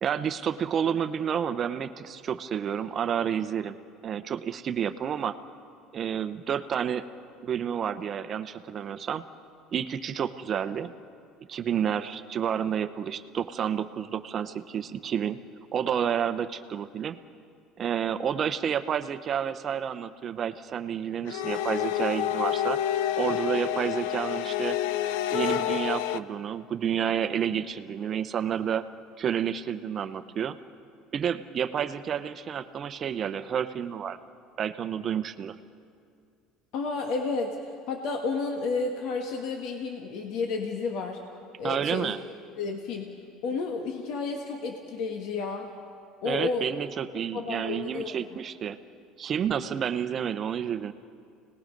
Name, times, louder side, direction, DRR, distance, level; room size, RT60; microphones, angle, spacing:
voice 1, 0.0-3.8 4.0-5.4 5.9-7.0 7.4-9.2 9.7-10.9 11.5-15.4 15.7-17.2 17.8-22.8 23.2-24.8 25.3-28.9 29.2-30.6 31.1-34.2 34.6-35.5 41.6-42.2 46.2-48.8 49.2-50.9, right 8 dB, 35° right, 11 dB, 0.8 m, -30 dB
sound 1, 21.3-26.2, left 11 dB, 90° left, 0.6 m, -28 dB
voice 2, 36.7-37.6 37.9-41.2 41.6-42.1 42.6-43.1 43.4-45.7 46.2-46.6 47.3-48.1, left 4 dB, 65° left, 3 dB, 1.7 m, -31 dB
30.0 x 19.5 x 5.3 m, 2.3 s
cardioid pair, 145°, 0 cm